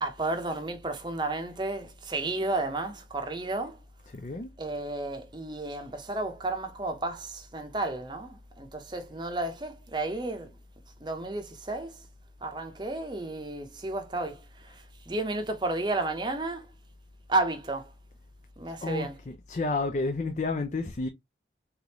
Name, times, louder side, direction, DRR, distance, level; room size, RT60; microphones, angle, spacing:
voice 1, 0.0-3.8 4.6-10.5 11.0-12.0 12.4-16.7 17.3-17.9 18.6-19.1, right 2 dB, 25° right, 0.7 m, -32 dB
voice 2, 4.1-4.5 18.8-21.1, left 3 dB, 40° left, 0.5 m, -31 dB
3.7 x 3.5 x 2.9 m
head